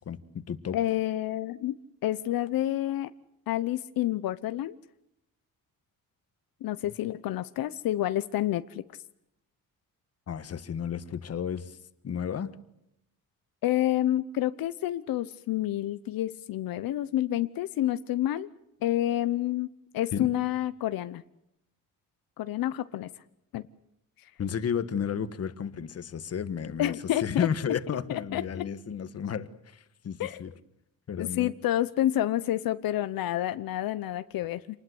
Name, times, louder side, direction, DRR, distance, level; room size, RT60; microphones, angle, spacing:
voice 1, 0.0-0.8 6.8-6.9 10.3-11.8 12.0-12.5 20.1-20.3 24.4-26.9 27.2-30.5 31.1-31.5, left 7 dB, 45° left, 13 dB, 1.4 m, -32 dB
voice 2, 0.7-1.8 2.0-3.1 3.5-4.8 6.6-8.8 13.6-18.5 18.8-19.7 19.9-21.2 22.4-23.1 23.5-23.6 24.2-24.3 26.8-27.5 28.3-28.6 30.2-30.4 31.2-34.8, left 13 dB, 85° left, 12 dB, 0.9 m, -29 dB
27.0 x 20.0 x 7.9 m, 0.81 s
cardioid pair, 140°, 34 cm